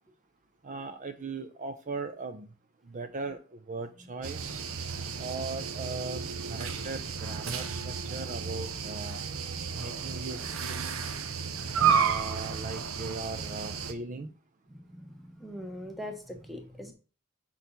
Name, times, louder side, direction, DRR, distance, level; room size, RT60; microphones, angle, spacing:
voice 1, 0.6-2.5 2.9-4.6 5.2-6.2 6.5-9.2 9.8-10.9 11.8-14.3, right 3 dB, 35° right, 8 dB, 0.5 m, -39 dB
sound 1, 4.2-13.9, right 6 dB, 75° right, 0.8 m, -32 dB
voice 2, 14.7-16.9, left 1 dB, ahead, 4 dB, 1.1 m, -42 dB
6.3 x 4.0 x 5.7 m, 0.37 s
head